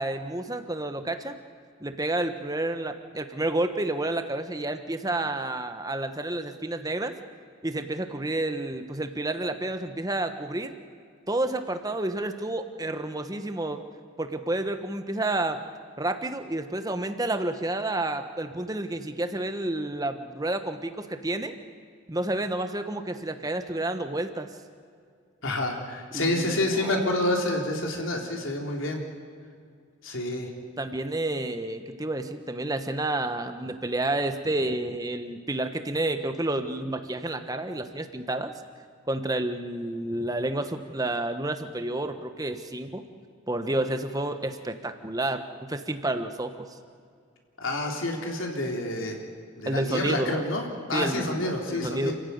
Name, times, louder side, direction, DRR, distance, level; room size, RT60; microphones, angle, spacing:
voice 1, 0.0-1.4 1.8-7.1 7.6-10.7 11.3-13.8 14.2-15.6 16.0-21.5 22.1-24.5 26.1-26.9 30.8-38.5 39.1-43.0 43.5-46.7 49.7-50.4 50.9-51.4 51.7-52.1, right 2 dB, 15° right, 8 dB, 1.2 m, -30 dB
voice 2, 25.4-29.0 30.0-30.5 47.6-49.2 49.6-52.1, left 1 dB, 70° left, 1 dB, 3.4 m, -28 dB
28.5 x 15.5 x 9.4 m, 2.2 s
head